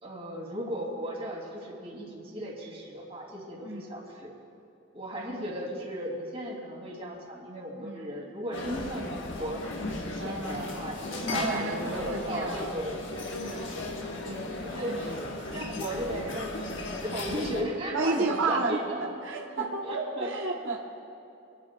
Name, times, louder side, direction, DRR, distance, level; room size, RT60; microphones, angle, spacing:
voice 1, 0.0-4.3 4.9-9.7 10.0-13.2 13.7-14.0 14.6-15.0 15.5-19.0 19.5-20.3, equal, 35° right, -3 dB, 2.6 m, -36 dB
voice 2, 3.6-3.9 7.8-8.1 10.2-12.7 13.4-15.0 17.9-20.8, right 3 dB, 90° right, -2 dB, 1.0 m, -33 dB
sound 1, 8.5-17.6, left 2 dB, 80° left, 1.3 m, -36 dB
28.5 x 9.8 x 2.3 m, 2.7 s
head